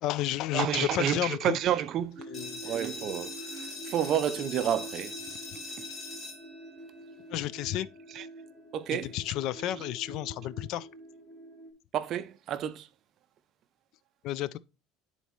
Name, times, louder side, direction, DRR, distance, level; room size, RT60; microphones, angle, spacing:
voice 1, 0.0-1.6 2.3-2.6 7.3-7.9 8.9-10.9 14.2-14.6, left 13 dB, 55° left, 0.4 m, -32 dB
voice 2, 0.5-2.3 2.6-5.2 5.5-5.8 8.1-8.3 8.7-9.1 11.9-12.9, right 10 dB, 45° right, 0.5 m, -30 dB
sound 1, 2.2-11.7, right 2 dB, 5° right, 1.6 m, -47 dB
sound 2, 2.3-7.8, left 2 dB, 20° left, 3.0 m, -42 dB
9.9 x 4.1 x 3.1 m
cardioid pair, 135°, 0 cm